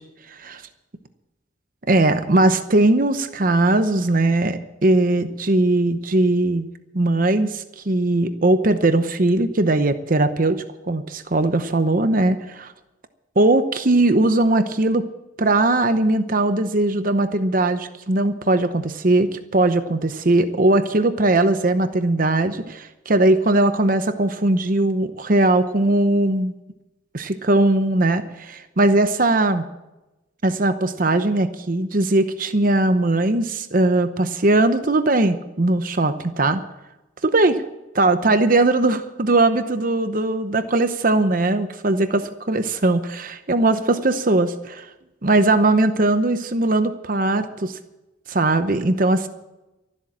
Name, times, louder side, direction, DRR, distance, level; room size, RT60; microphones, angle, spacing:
voice 1, 1.9-6.7 6.9-12.7 13.4-15.1 15.4-26.5 27.1-29.6 30.4-36.6 37.2-37.6 37.9-44.9 45.2-47.8 48.3-49.3, right 2 dB, 45° right, 10 dB, 0.8 m, -19 dB
13.5 x 12.0 x 7.3 m, 0.99 s
head